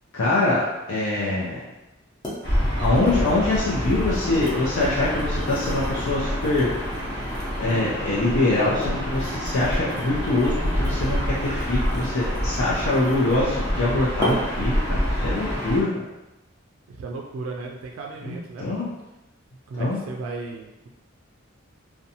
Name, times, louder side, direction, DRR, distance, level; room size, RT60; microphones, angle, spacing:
voice 1, 0.1-1.7 2.8-6.7 7.6-15.9 18.2-18.9 19.8-20.0, left 2 dB, 75° left, -7 dB, 0.5 m, -24 dB
sound 1, 1.4-1.5 2.2-2.4 2.8-8.0 8.6-13.5 14.2-14.7 15.2-15.4, equal, 20° left, 0.6 m, -36 dB
Gull seagull / Ocean, 2.4-15.8, equal, 50° left, 0.9 m, -27 dB
voice 2, 16.9-18.9 19.7-20.9, right 3 dB, 75° right, 1 dB, 0.3 m, -35 dB
2.6 x 2.2 x 2.7 m, 0.97 s
head